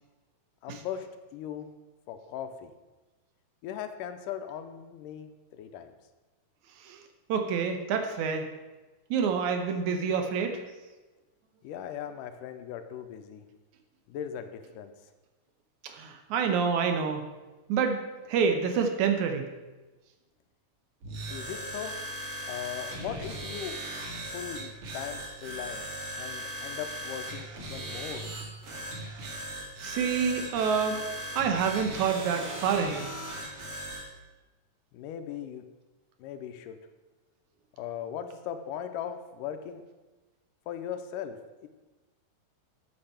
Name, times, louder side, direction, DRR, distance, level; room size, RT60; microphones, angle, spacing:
voice 1, 0.6-1.7 2.1-2.7 3.6-5.9 11.6-13.5 14.1-14.9 21.3-22.0 22.5-23.7 24.3-25.9 26.1-28.3 34.9-35.7 36.2-36.8 37.8-39.8 40.7-41.7, left 9 dB, 85° left, 8 dB, 2.2 m, -39 dB
voice 2, 7.3-8.5 9.1-10.6 15.8-17.4 17.7-18.0 18.3-19.5 29.8-31.0 31.3-33.1, right 6 dB, 70° right, 5 dB, 2.2 m, -27 dB
sound 1, 21.0-34.1, right 1 dB, 50° right, 2.1 m, -38 dB
8.7 x 7.3 x 5.7 m, 1.2 s
omnidirectional pair, 3.8 m